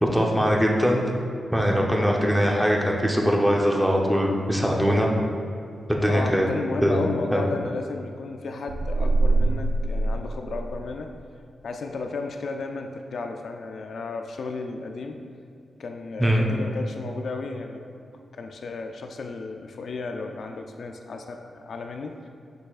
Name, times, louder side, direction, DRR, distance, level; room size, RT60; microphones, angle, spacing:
voice 1, 0.0-1.0 1.5-5.1 5.9-6.5 6.8-7.4 16.2-16.4, equal, ahead, -1 dB, 0.7 m, -21 dB
voice 2, 6.1-11.1 11.6-15.2 15.8-17.8 18.3-22.3, left 3 dB, 60° left, 4 dB, 0.4 m, -34 dB
sound 1, 8.7-11.1, right 2 dB, 90° right, 0.4 m, -24 dB
7.9 x 6.3 x 2.4 m, 2.5 s
wide cardioid pair, 155°, 0 cm